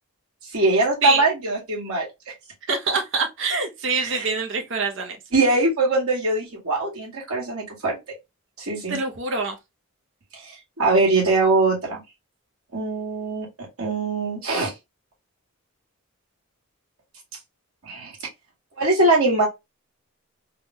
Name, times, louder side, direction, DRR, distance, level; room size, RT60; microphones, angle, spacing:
voice 1, 0.5-2.1 4.0-4.3 5.3-8.0 8.6-9.0 10.3-12.0 12.7-13.5 13.8-14.7 17.8-18.1 18.8-19.5, right 2 dB, 90° right, 1.7 m, -22 dB
voice 2, 2.7-5.2 8.9-9.6, right 4 dB, 60° right, 0.8 m, -25 dB
3.6 x 2.2 x 2.9 m
head